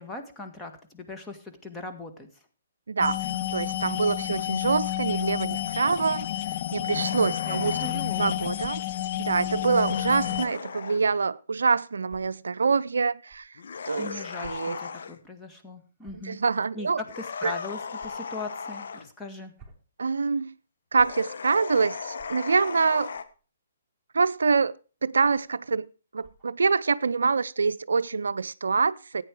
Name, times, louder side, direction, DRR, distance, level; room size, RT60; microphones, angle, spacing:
voice 1, 0.0-2.3 7.4-8.3 14.0-16.4 16.7-16.9 17.2-19.5, left 2 dB, 10° left, 1.9 m, -40 dB
voice 2, 2.9-6.3 6.7-7.8 8.2-8.8 9.2-13.5 13.9-14.1 14.4-14.8 16.2-17.0 17.4-17.5 20.0-20.5 20.9-23.1 24.1-24.8 25.0-25.9 26.1-29.2, right 4 dB, 80° right, 0.5 m, -25 dB
sound 1, 3.0-10.5, left 13 dB, 45° left, 0.6 m, -30 dB
sound 2, 6.8-8.0 9.4-11.1 13.6-15.2 17.0-19.1 20.9-23.2, left 5 dB, 65° left, 1.3 m, -37 dB
sound 3, 8.6-8.7 10.3-10.5 11.3-11.4 12.1-12.2 13.2-13.4 14.4-14.5 14.9-15.0 16.0-16.3 18.0-18.1 19.3-19.8 20.9-21.1 22.1-22.3 23.1-23.4 24.2-24.5 25.2-25.5 26.2-26.5, right 5 dB, 5° right, 3.5 m, -52 dB
14.0 x 9.2 x 4.8 m
hypercardioid pair, 140°, 0 cm